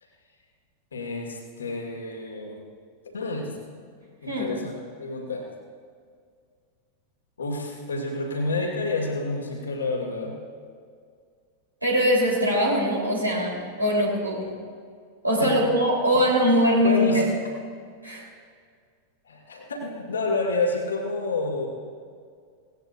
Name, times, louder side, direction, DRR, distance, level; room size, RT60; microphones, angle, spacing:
voice 1, 0.9-2.6 3.1-3.6 4.2-4.7 5.0-5.4 7.4-10.4 15.4-15.7 16.1-16.2 16.8-17.3 19.3-21.7, left 2 dB, 70° left, 1 dB, 2.2 m, -29 dB
voice 2, 4.3-4.6 11.8-14.5 15.2-17.2 18.0-18.3, equal, 85° right, -4 dB, 3.6 m, -22 dB
18.0 x 17.5 x 2.6 m, 2.1 s
figure-of-eight pair, 90°, 0 cm